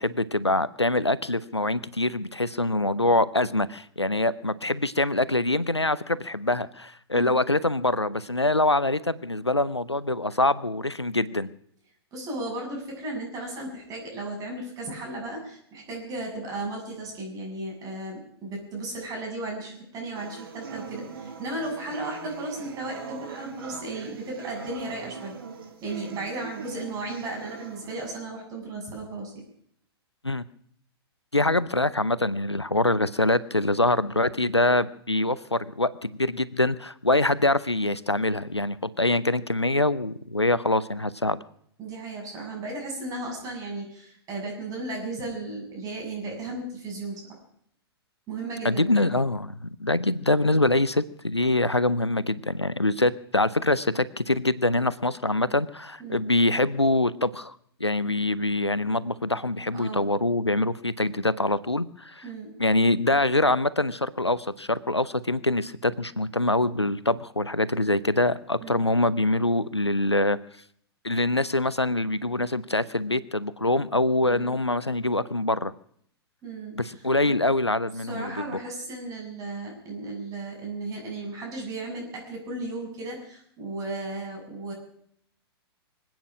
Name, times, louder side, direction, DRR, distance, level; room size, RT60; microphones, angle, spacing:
voice 1, 0.0-11.5 30.2-30.4 31.3-41.4 48.6-62.2 62.6-70.4 71.0-75.7 76.8-78.3, left 2 dB, 90° left, 18 dB, 0.7 m, -24 dB
voice 2, 12.1-25.3 25.8-29.4 41.8-47.4 48.3-49.1 56.0-56.2 59.7-60.1 62.2-62.5 68.6-68.9 74.2-74.6 76.4-77.4 78.1-84.7, right 2 dB, 25° right, 0 dB, 7.8 m, -35 dB
sound 1, 20.2-28.1, right 6 dB, 60° right, 2.5 m, -41 dB
25.0 x 9.2 x 6.2 m, 0.65 s
figure-of-eight pair, 105°, 14 cm